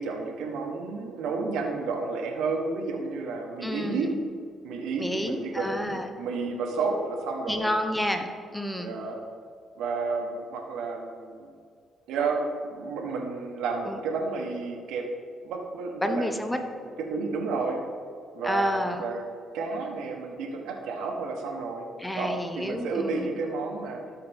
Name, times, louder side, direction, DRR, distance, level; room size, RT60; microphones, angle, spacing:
voice 1, 0.0-4.1 4.6-7.7 8.8-9.2 9.8-11.5 12.1-12.4 12.6-15.1 15.4-16.7 17.1-17.8 18.3-19.2 19.5-21.9 22.1-24.0, right 4 dB, 90° right, 1 dB, 1.1 m, -31 dB
voice 2, 3.6-4.2 5.0-6.1 7.5-8.9 13.9-14.0 16.0-16.6 18.4-19.1 22.0-23.3, equal, 5° left, 5 dB, 0.8 m, -29 dB
13.5 x 4.8 x 3.5 m, 2.2 s
cardioid pair, 90°, 0 cm